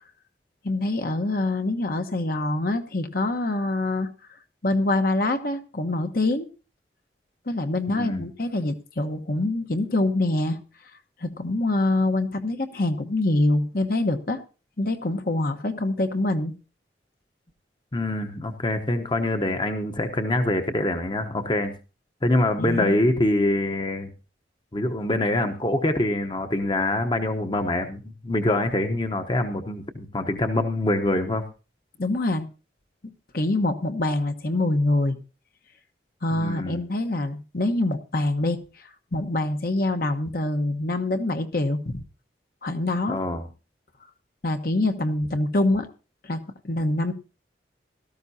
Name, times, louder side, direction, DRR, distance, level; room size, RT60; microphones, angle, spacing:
voice 1, 0.6-4.1 4.6-6.5 7.5-10.6 11.2-14.4 14.8-16.5 22.6-22.9 32.0-32.5 33.3-35.2 36.2-42.0 42.6-43.2 44.4-45.9 46.2-47.1, left 2 dB, 55° left, 6 dB, 1.2 m, -25 dB
voice 2, 7.9-8.3 17.9-21.7 22.2-24.1 24.7-31.4 36.3-36.8 43.1-43.5, left 1 dB, 25° left, 7 dB, 1.0 m, -25 dB
17.0 x 13.0 x 2.8 m, 0.32 s
head